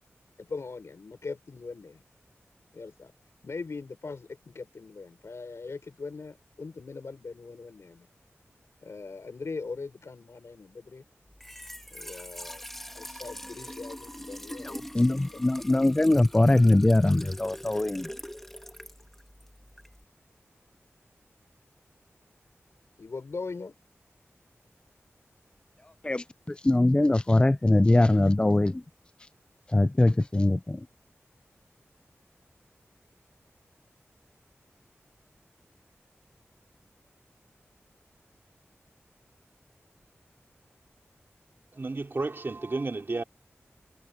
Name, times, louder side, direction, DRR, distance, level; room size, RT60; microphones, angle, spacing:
voice 1, 0.4-2.0 2.7-3.1 3.4-8.1 8.8-11.0 11.9-12.6 12.9-15.2 23.0-23.8, left 4 dB, 75° left, 4.6 m, -40 dB
Trickle dribble / Fill (with liquid), 11.3-20.0, equal, 5° left, 2.0 m, -44 dB
voice 2, 14.6-18.1 26.0-26.2 26.6-28.8 29.7-30.8, left 2 dB, 20° left, 0.4 m, -22 dB
voice 3, 41.7-43.2, right 3 dB, 50° right, 2.8 m, -32 dB
wide cardioid pair, 70°, 5 cm